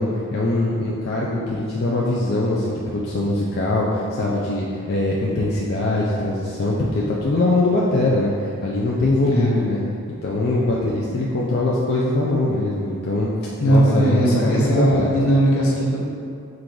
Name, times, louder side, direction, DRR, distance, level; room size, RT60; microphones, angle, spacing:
voice 1, 0.0-9.8 10.2-13.3 13.6-15.1, left 2 dB, 50° left, -5 dB, 0.4 m, -22 dB
voice 2, 13.6-16.0, right 1 dB, 75° left, -4 dB, 0.9 m, -18 dB
3.7 x 2.5 x 4.5 m, 2.4 s
head